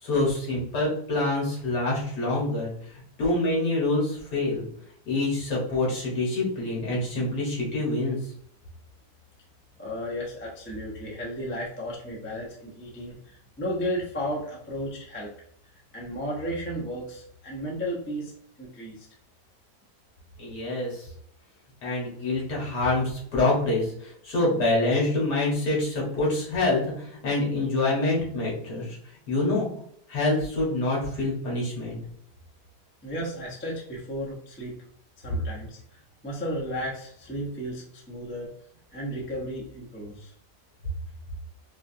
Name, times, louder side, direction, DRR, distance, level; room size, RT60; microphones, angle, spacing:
voice 1, 0.0-4.7 5.1-8.3 20.4-21.1 21.8-29.0 29.3-29.7 30.1-32.0, left 2 dB, 70° left, -4 dB, 2.1 m, -26 dB
voice 2, 9.8-15.3 15.9-18.3 18.6-19.1 33.0-34.7 35.2-38.5 38.9-40.3, equal, 10° left, -4 dB, 0.6 m, -34 dB
4.8 x 2.5 x 2.7 m, 0.67 s
omnidirectional pair, 1.9 m